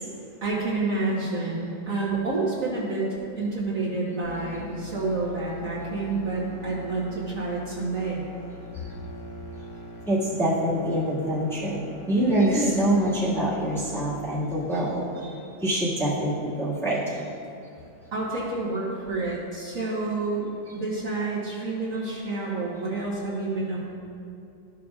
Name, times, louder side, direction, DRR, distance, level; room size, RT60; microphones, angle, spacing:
voice 1, 0.4-3.0 3.4-8.2 18.1-20.5 20.7-23.9, right 3 dB, 50° right, -8 dB, 1.5 m, -29 dB
sound 1, 4.2-14.2, left 1 dB, 50° left, 0.8 m, -41 dB
voice 2, 10.1-15.3 15.6-17.2, right 1 dB, ahead, -9 dB, 1.6 m, -25 dB
13.0 x 6.4 x 2.4 m, 2.5 s
omnidirectional pair, 2.0 m